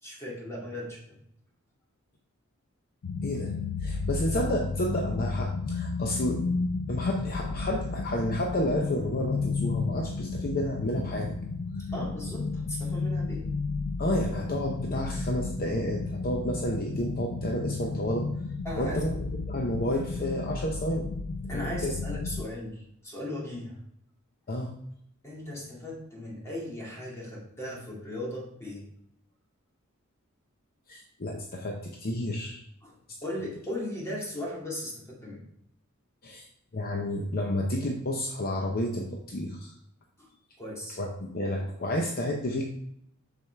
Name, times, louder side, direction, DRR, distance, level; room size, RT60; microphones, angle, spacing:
voice 1, 0.0-1.2 3.9-4.0 11.9-13.5 18.6-19.1 21.5-23.8 25.2-28.9 32.8-32.9 33.2-35.4 40.2-40.3 40.6-41.0, left 1 dB, 15° left, -4 dB, 2.4 m, -37 dB
sound 1, 3.0-22.4, left 4 dB, 80° left, 0.5 m, -33 dB
voice 2, 3.2-3.5 3.8-6.4 6.9-11.3 11.7-11.8 14.0-18.3 18.8-19.1 19.5-21.1 21.5-22.0 24.5-24.7 30.9-32.6 36.2-36.5 36.7-39.7 41.0-42.7, left 1 dB, 45° left, 2 dB, 0.7 m, -30 dB
7.2 x 6.1 x 3.4 m, 0.73 s
head